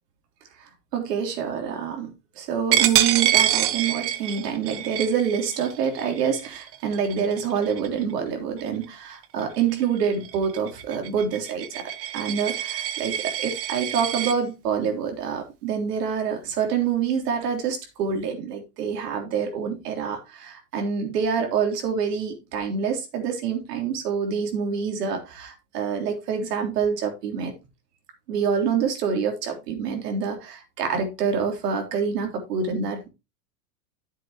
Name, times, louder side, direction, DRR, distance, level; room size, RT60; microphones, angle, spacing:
voice 1, 0.9-2.1 2.4-11.8 12.1-27.5 28.3-33.1, right 6 dB, 90° right, 3.4 m, -26 dB
Coin (dropping), 2.7-8.1 8.6-8.8 9.2-14.3, right 12 dB, 30° right, 0.8 m, -26 dB
10.5 x 7.7 x 3.0 m
supercardioid pair, 145°, 46 cm